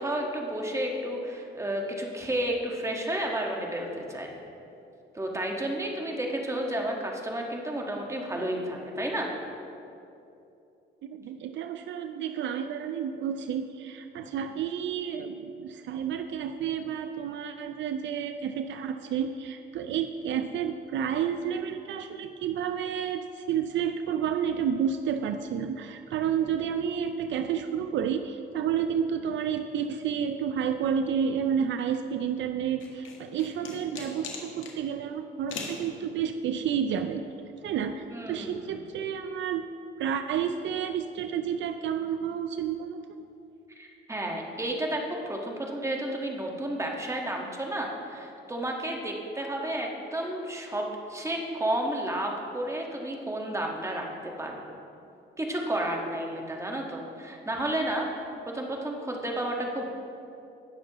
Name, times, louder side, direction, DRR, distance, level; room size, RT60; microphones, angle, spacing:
voice 1, 0.0-4.3 5.1-9.4 38.1-38.7 43.8-54.6 55.4-58.2 58.5-59.8, right 1 dB, 15° right, 0 dB, 1.5 m, -31 dB
voice 2, 11.0-37.2 37.6-39.6 40.0-43.0, right 8 dB, 70° right, 8 dB, 0.5 m, -30 dB
sound 1, 32.8-34.8 35.5-35.8, left 5 dB, 75° left, 1.5 m, -39 dB
18.0 x 6.6 x 3.0 m, 2.7 s
cardioid pair, 90°, 20 cm